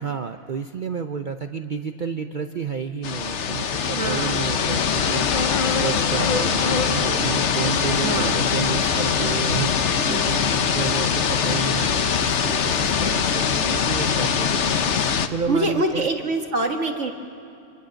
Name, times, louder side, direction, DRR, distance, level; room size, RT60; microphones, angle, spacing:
voice 1, 0.0-14.6 15.3-16.1, right 6 dB, 45° right, 7 dB, 0.8 m, -31 dB
sound 1, 3.0-15.3, left 6 dB, 60° left, 1.2 m, -22 dB
voice 2, 4.0-4.4 8.0-8.4 10.1-10.2 15.5-17.1, right 2 dB, 65° right, 3 dB, 1.9 m, -24 dB
sound 2, 4.2-9.4, left 4 dB, 45° left, 0.7 m, -32 dB
25.5 x 25.5 x 6.4 m, 2.6 s
omnidirectional pair, 1.3 m